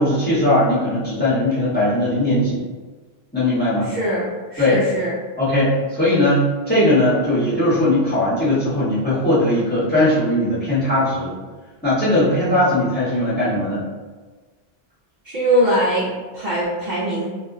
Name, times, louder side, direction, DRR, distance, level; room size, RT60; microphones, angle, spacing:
voice 1, 0.0-2.6 3.3-3.9 4.6-4.8 5.4-11.3 11.8-13.8, left 1 dB, 10° left, -10 dB, 0.9 m, -19 dB
voice 2, 3.8-5.2 15.2-17.3, right 1 dB, 55° right, -7 dB, 0.6 m, -22 dB
2.2 x 2.1 x 3.5 m, 1.3 s
omnidirectional pair, 1.1 m